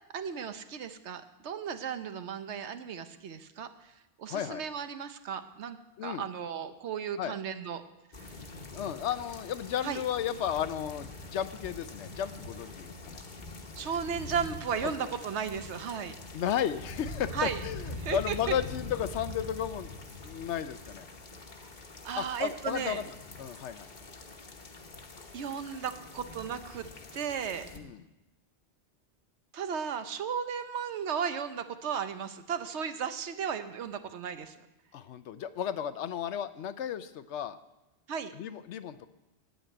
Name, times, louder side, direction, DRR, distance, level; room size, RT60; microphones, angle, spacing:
voice 1, 0.1-3.7 4.2-7.8 9.8-10.0 13.8-16.1 17.3-17.6 18.0-18.3 21.3-21.5 22.0-23.0 25.3-26.9 27.1-27.7 29.5-34.6 38.1-38.3, right 7 dB, 80° right, 10 dB, 1.1 m, -35 dB
voice 2, 4.3-4.6 6.0-6.3 7.2-7.4 8.7-13.2 14.8-15.1 16.3-19.9 20.2-21.1 22.2-23.1 23.4-23.9 27.7-28.0 34.9-37.6 38.3-39.1, left 9 dB, 90° left, 13 dB, 1.0 m, -34 dB
sound 1, 8.1-27.8, left 2 dB, 45° left, 1.2 m, -44 dB
9.2 x 8.1 x 9.1 m, 1.0 s
omnidirectional pair, 1.1 m